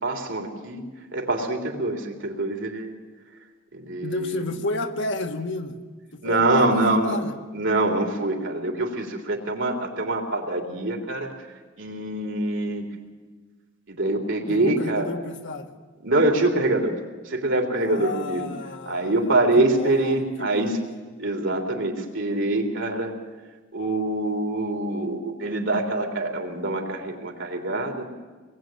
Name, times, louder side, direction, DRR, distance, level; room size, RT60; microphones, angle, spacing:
voice 1, 0.0-0.8 1.1-2.9 3.7-4.4 6.2-7.2 7.5-11.3 11.8-12.9 13.9-15.1 16.0-17.0 17.3-18.5 18.9-20.8 21.2-23.1 23.7-28.1, right 2 dB, 65° right, 2 dB, 3.6 m, -24 dB
voice 2, 4.0-5.8 6.1-7.3 14.5-15.7 17.8-19.2 19.6-20.8, left 2 dB, 65° left, 5 dB, 1.9 m, -32 dB
26.0 x 20.5 x 9.2 m, 1.4 s
head